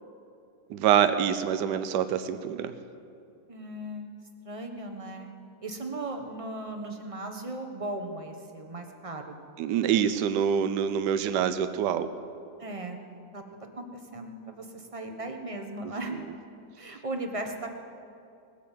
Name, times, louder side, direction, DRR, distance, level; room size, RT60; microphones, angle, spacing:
voice 1, 0.7-2.7 9.6-12.1, right 8 dB, 75° right, 11 dB, 1.3 m, -25 dB
voice 2, 3.5-4.1 4.4-5.3 5.6-9.4 12.6-13.0 13.3-16.2 16.8-17.7, right 2 dB, 20° right, 4 dB, 1.1 m, -37 dB
20.0 x 8.5 x 7.4 m, 2.5 s
omnidirectional pair, 1.9 m